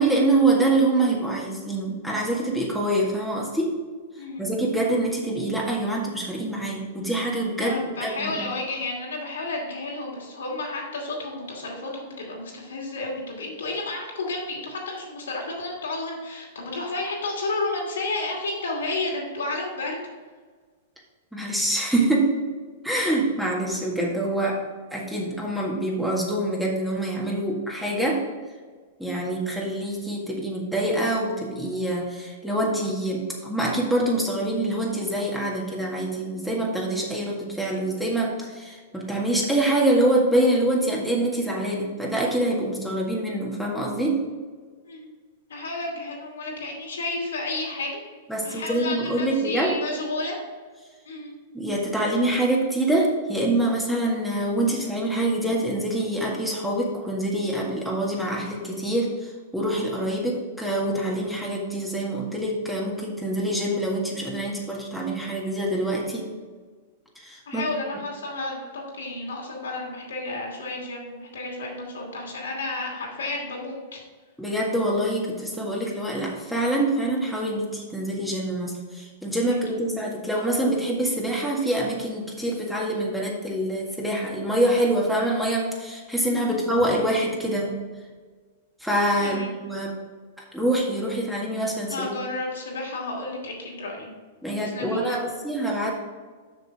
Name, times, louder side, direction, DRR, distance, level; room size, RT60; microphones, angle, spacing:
voice 1, 0.0-3.7 4.4-8.5 21.3-22.3 22.8-24.6 24.9-28.2 29.0-44.2 48.3-49.7 51.5-66.3 67.2-67.6 74.4-87.8 88.8-90.0 90.5-92.1 94.4-95.9, right 1 dB, ahead, -3 dB, 1.8 m, -25 dB
voice 2, 7.6-20.0 44.8-45.1 45.5-48.0 48.4-50.4 51.1-51.4 67.5-74.0 79.7-79.8 86.4-86.7 89.2-89.6 91.9-94.1 94.6-95.3, left 2 dB, 80° left, -2 dB, 2.5 m, -32 dB
6.8 x 6.1 x 4.8 m, 1.5 s
hypercardioid pair, 105°, 0 cm